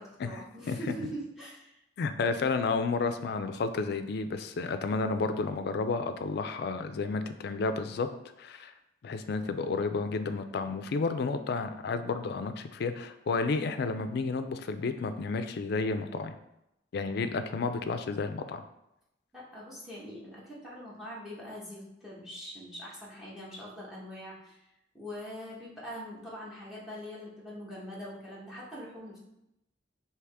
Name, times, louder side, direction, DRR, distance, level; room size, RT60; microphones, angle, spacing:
voice 1, 0.0-1.8 19.3-24.6 24.9-29.2, equal, ahead, -7 dB, 1.1 m, -43 dB
voice 2, 2.0-8.1 8.4-8.7 9.0-16.3 16.9-18.6, left 4 dB, 60° left, 9 dB, 0.4 m, -31 dB
4.9 x 2.9 x 3.4 m, 0.85 s
head